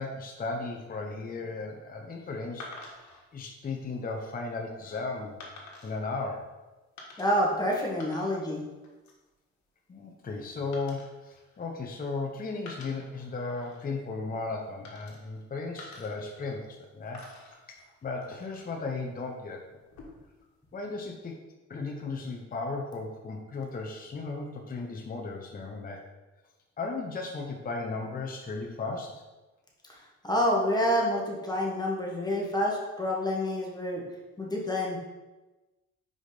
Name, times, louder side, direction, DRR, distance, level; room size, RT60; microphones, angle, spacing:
voice 1, 0.0-2.7 3.3-5.4 5.8-6.5 9.9-17.2 17.7-19.6 20.7-21.4 21.7-26.0 26.8-29.2, left 3 dB, 30° left, 1 dB, 0.8 m, -35 dB
sound 1, 2.6-3.2 3.9-4.3 5.4-6.0 7.0-7.5 7.8-8.6 8.8-9.3 10.7-12.2 12.6-13.8 14.8-15.4 15.8-16.8 17.1-18.8 19.8-20.4, left 2 dB, 65° left, 1.6 m, -49 dB
voice 2, 7.2-8.6 29.9-34.0 34.4-35.0, equal, 15° left, -2 dB, 1.6 m, -28 dB
5.0 x 5.0 x 4.0 m, 1.1 s
cardioid pair, 90°, 30 cm